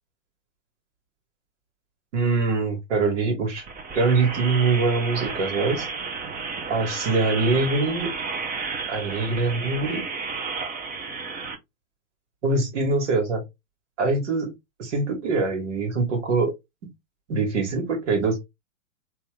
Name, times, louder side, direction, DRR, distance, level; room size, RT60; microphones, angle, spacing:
voice 1, 2.1-3.6 3.9-5.9 6.7-8.1 8.9-10.0 12.4-13.4 14.0-14.5 14.8-16.5 17.3-18.4, right 3 dB, 65° right, 2.1 m, -23 dB
sound 1, 3.6-11.5, right 4 dB, 20° right, 1.0 m, -32 dB
3.5 x 3.0 x 3.4 m
hypercardioid pair, 110°, 38 cm